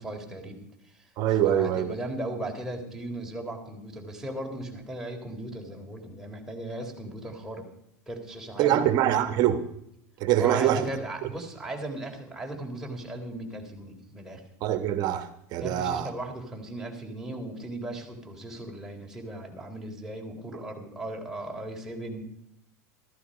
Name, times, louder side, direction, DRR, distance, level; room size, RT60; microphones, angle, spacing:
voice 1, 0.0-1.1 1.4-7.7 8.1-8.8 10.4-14.4 15.6-22.2, right 1 dB, 5° right, 3.7 m, -37 dB
voice 2, 1.2-1.9 8.6-9.6 10.2-10.9 14.6-16.1, right 11 dB, 50° right, 1.4 m, -24 dB
14.5 x 14.0 x 5.2 m
hypercardioid pair, 100°, 9 cm